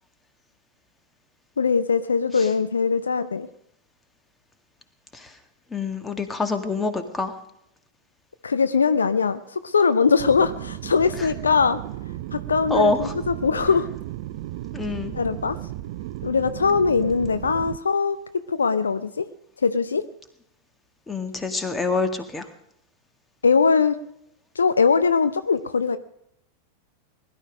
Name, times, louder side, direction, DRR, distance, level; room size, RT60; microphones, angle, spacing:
voice 1, 1.6-3.5 8.4-11.8 12.3-13.9 15.1-15.6 16.2-18.2 18.5-19.2 19.6-20.0 23.4-24.0 24.6-26.0, left 5 dB, 75° left, 12 dB, 0.6 m, -21 dB
voice 2, 5.7-7.4 11.2-11.3 12.7-13.1 14.7-15.2 21.1-22.5, left 3 dB, 10° left, 7 dB, 1.9 m, -26 dB
sound 1, 10.2-17.8, right 15 dB, 50° right, 0.6 m, -34 dB
20.5 x 12.0 x 5.2 m, 0.76 s
figure-of-eight pair, 90°, 0 cm